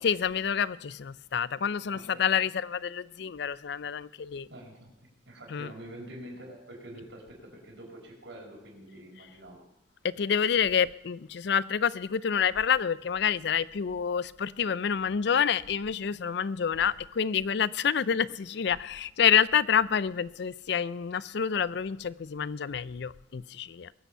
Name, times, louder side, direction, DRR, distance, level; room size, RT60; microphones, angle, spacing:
voice 1, 0.0-4.5 5.5-5.7 10.0-23.9, left 7 dB, 65° left, 0.4 m, -28 dB
voice 2, 1.9-2.2 4.5-10.0, right 1 dB, 80° right, 4.9 m, -46 dB
21.5 x 8.2 x 5.6 m
head